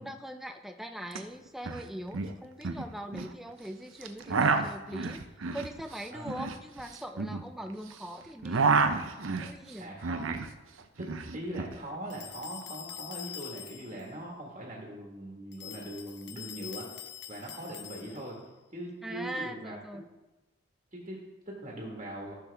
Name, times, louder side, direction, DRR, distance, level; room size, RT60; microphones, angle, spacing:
voice 1, 0.0-5.2 5.5-8.7 9.4-10.0 18.2-18.3 19.0-20.0, right 1 dB, ahead, 6 dB, 0.4 m, -41 dB
sound 1, 1.1-1.2 1.5-1.8 2.1-3.3 4.0-8.0 8.3-10.5 10.8-11.7, right 4 dB, 70° right, 0.6 m, -30 dB
voice 2, 9.8-10.3 11.0-18.4 18.7-19.8 20.9-22.3, right 1 dB, 30° right, -2 dB, 1.6 m, -41 dB
sound 2, 12.1-14.1 15.5-18.4, left 10 dB, 55° left, 0.6 m, -45 dB
14.0 x 6.1 x 3.4 m, 1.1 s
head